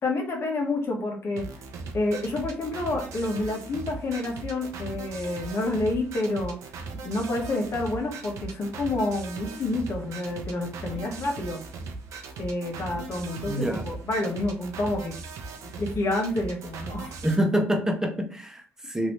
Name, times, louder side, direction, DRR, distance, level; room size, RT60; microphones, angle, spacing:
voice 1, 0.0-1.4 1.9-6.5 7.0-11.6 12.4-15.1 15.8-17.1, left 2 dB, 55° left, 1 dB, 1.0 m, -29 dB
sound 1, 1.4-17.4, right 4 dB, 75° right, 0.6 m, -39 dB
voice 2, 13.5-13.8 17.2-19.1, equal, 10° right, 4 dB, 0.9 m, -26 dB
3.0 x 2.7 x 3.1 m, 0.40 s
supercardioid pair, 60°, 5 cm